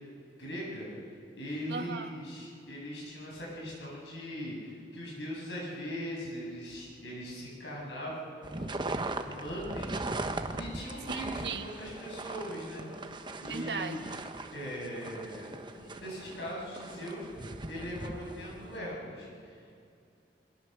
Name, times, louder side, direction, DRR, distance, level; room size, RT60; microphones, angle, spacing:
voice 1, 0.4-0.9 1.3-10.2 10.5-12.9 13.4-14.0 14.5-19.6, equal, 85° left, -3 dB, 7.4 m, -40 dB
voice 2, 1.7-2.1 11.1-11.7 13.5-14.0, right 4 dB, 70° right, 6 dB, 1.5 m, -37 dB
sound 1, 8.4-18.8, right 2 dB, 25° right, 1.1 m, -39 dB
23.0 x 20.0 x 6.8 m, 2.5 s
head